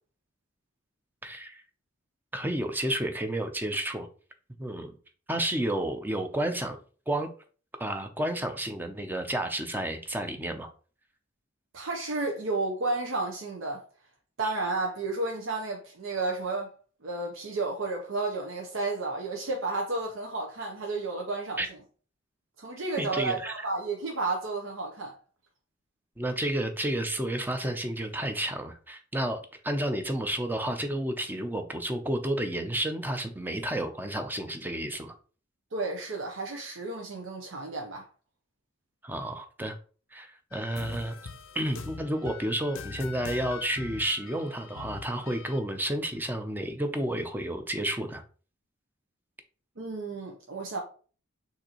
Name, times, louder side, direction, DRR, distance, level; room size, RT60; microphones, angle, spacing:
voice 1, 1.2-1.6 2.3-4.1 4.6-4.9 5.3-6.8 7.1-7.3 7.8-10.7 21.6-21.7 23.0-23.5 26.2-35.1 39.0-39.8 40.1-41.2 41.5-48.2, right 1 dB, 10° right, 0.5 m, -31 dB
voice 2, 11.7-13.8 14.4-16.7 17.0-21.8 22.6-25.2 35.7-38.0 49.8-50.8, right 3 dB, 80° right, 0.7 m, -32 dB
sound 1, 40.5-45.6, left 5 dB, 85° left, 0.6 m, -42 dB
6.4 x 2.7 x 2.9 m
head